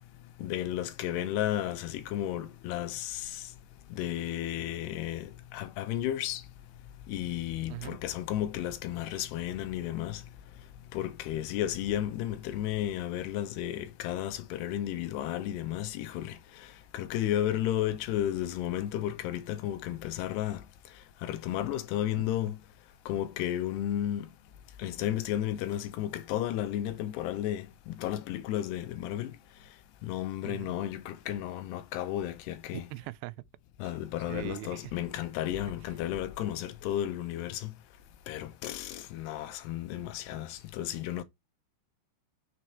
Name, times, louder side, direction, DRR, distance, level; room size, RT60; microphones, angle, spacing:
voice 1, 0.4-3.5 3.9-6.4 7.1-10.2 10.9-20.6 21.2-22.6 23.1-24.3 24.8-29.4 30.0-32.9 33.8-37.7 38.3-41.2, left 12 dB, 80° left, 2.8 m, -33 dB
voice 2, 30.4-30.7 32.7-33.5 34.3-34.9 40.3-40.4, right 20 dB, 85° right, 2.7 m, -41 dB
6.7 x 4.6 x 4.4 m
omnidirectional pair, 4.9 m